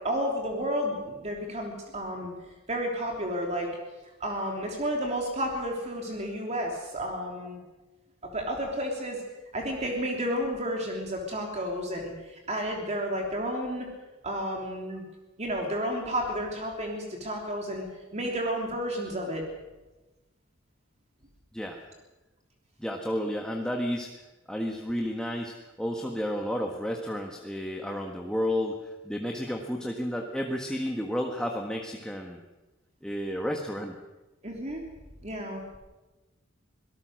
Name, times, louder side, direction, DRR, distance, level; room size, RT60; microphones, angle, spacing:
voice 1, 0.0-2.3 2.7-3.7 4.2-7.6 8.2-9.2 9.5-13.9 14.2-15.0 15.4-17.9 18.1-19.4 34.4-34.8 35.2-35.8, equal, 35° right, 1 dB, 3.2 m, -31 dB
voice 2, 22.8-24.1 24.5-32.4 33.0-34.0, equal, 5° left, 1 dB, 1.5 m, -31 dB
25.0 x 18.5 x 6.4 m, 1.1 s
head